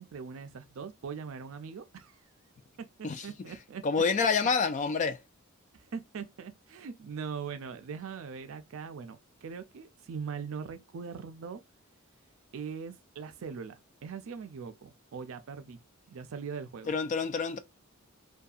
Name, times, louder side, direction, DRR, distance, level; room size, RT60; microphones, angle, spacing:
voice 1, 0.0-2.2 2.8-2.9 3.2-3.8 5.7-11.6 12.5-16.9, right 6 dB, 70° right, 0.4 m, -41 dB
voice 2, 3.8-5.2 16.9-17.6, left 5 dB, 35° left, 0.3 m, -27 dB
2.6 x 2.2 x 2.3 m
head